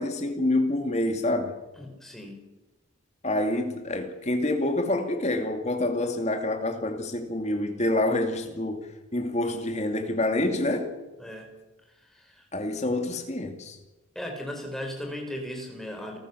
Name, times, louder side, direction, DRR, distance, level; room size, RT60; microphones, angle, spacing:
voice 1, 0.0-1.5 3.2-8.8 9.1-10.9 12.5-13.8, left 1 dB, 35° left, 2.4 m, -27 dB
voice 2, 1.8-2.4 11.2-11.5 12.1-12.4 14.1-16.2, left 1 dB, ahead, 4.1 m, -37 dB
29.0 x 14.0 x 6.9 m
head